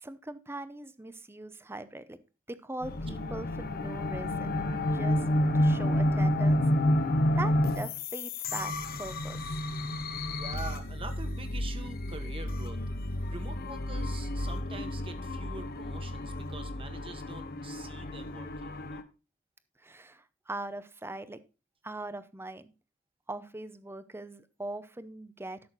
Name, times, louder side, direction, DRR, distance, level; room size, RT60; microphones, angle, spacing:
voice 1, 0.0-2.2 2.5-4.5 4.9-5.2 5.5-6.6 7.4-9.4 19.8-21.4 21.8-22.7 23.3-25.7, right 2 dB, 10° right, 0.7 m, -41 dB
sound 1, 2.8-19.0, left 1 dB, 50° left, 0.9 m, -30 dB
voice 2, 10.3-12.8 13.3-19.0, right 3 dB, 30° right, 1.3 m, -45 dB
12.0 x 6.4 x 4.0 m
head